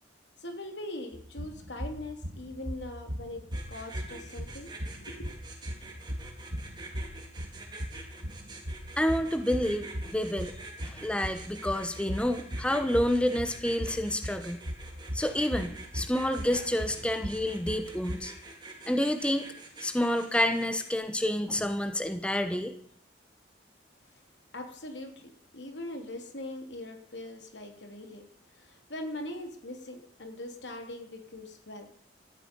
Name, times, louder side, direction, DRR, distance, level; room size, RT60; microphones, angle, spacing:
voice 1, 0.4-3.4 3.7-4.7 5.0-5.3 24.5-28.3 28.5-31.9, left 1 dB, 85° left, 4 dB, 3.1 m, -41 dB
sound 1, 1.1-18.2, equal, 60° right, 1.9 m, -39 dB
sound 2, 3.5-20.9, right 3 dB, 25° right, 3.6 m, -47 dB
voice 2, 9.0-10.5 10.8-14.6 15.1-18.3 18.9-19.4 19.8-22.7, left 1 dB, 5° left, 8 dB, 1.0 m, -29 dB
19.0 x 14.5 x 5.4 m, 0.65 s
head